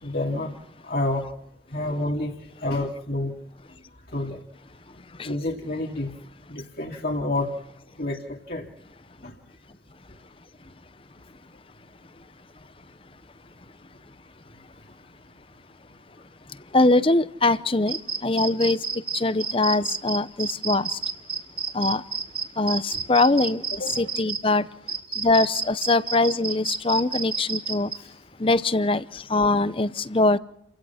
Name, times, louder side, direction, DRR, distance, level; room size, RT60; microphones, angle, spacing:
voice 1, 0.0-1.3 1.7-2.4 2.6-3.3 4.1-4.4 5.2-6.1 6.5-7.5 8.0-8.7 9.2-9.3 23.8-24.0 25.1-25.2 28.0-28.1, left 2 dB, 60° left, 2.5 m, -29 dB
voice 2, 16.7-18.8 19.1-21.0 21.7-22.0 22.6-23.6 24.0-24.6 25.2-27.9 28.4-30.4, left 2 dB, 30° left, 0.8 m, -22 dB
sound 1, 17.9-24.4 24.9-28.0, right 4 dB, 30° right, 3.0 m, -30 dB
29.5 x 16.5 x 5.8 m
head